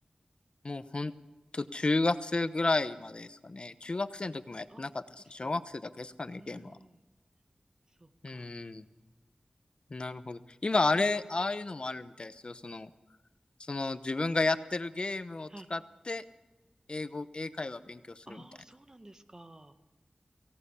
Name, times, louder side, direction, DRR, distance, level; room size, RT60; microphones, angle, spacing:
voice 1, 0.6-1.1 1.5-5.0 5.3-6.8 8.2-8.8 9.9-12.9 13.6-15.8 16.1-16.2 16.9-18.4, left 3 dB, 50° left, 12 dB, 0.9 m, -32 dB
voice 2, 6.3-7.0 7.9-8.5 15.5-15.7 18.3-19.7, right 1 dB, 30° right, 8 dB, 1.6 m, -53 dB
24.0 x 17.5 x 8.3 m, 1.1 s
wide cardioid pair, 75°, 2 cm